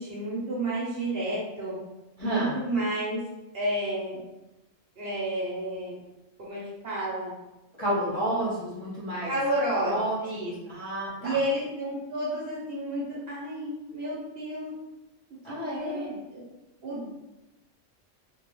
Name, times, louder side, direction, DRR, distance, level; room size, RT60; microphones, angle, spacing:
voice 1, 0.0-1.7 2.2-3.2 3.5-4.2 5.0-5.9 6.4-7.3 8.3-8.4 9.2-9.9 10.2-10.5 11.2-14.7 15.6-16.0 16.3-16.4 16.8-17.1, right 1 dB, 55° right, -6 dB, 0.8 m, -31 dB
voice 2, 2.2-2.5 7.8-9.3 9.8-11.4 15.4-16.1, right 1 dB, 30° left, -10 dB, 0.6 m, -30 dB
2.2 x 2.0 x 2.9 m, 1.0 s
omnidirectional pair, 1.4 m